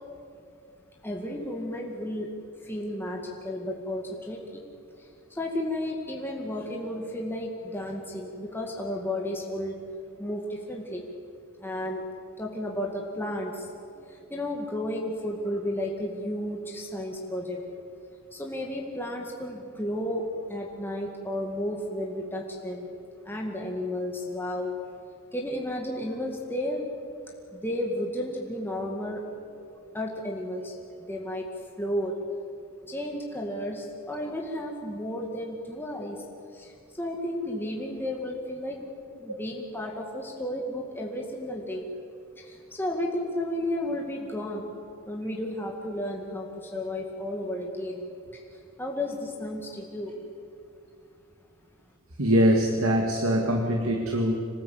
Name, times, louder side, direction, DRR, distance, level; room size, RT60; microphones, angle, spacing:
voice 1, 1.0-2.3 2.6-4.6 5.0-9.8 10.2-11.0 11.6-12.0 12.4-13.7 14.0-17.6 18.3-22.9 23.2-24.7 25.3-26.8 27.5-29.5 29.9-31.5 31.8-32.1 32.8-36.2 36.5-38.9 39.2-41.9 42.3-44.7 45.1-50.2, left 1 dB, 10° left, -1 dB, 2.0 m, -33 dB
voice 2, 52.2-54.4, equal, 85° right, 2 dB, 2.0 m, -23 dB
26.5 x 18.5 x 8.5 m, 2.5 s
head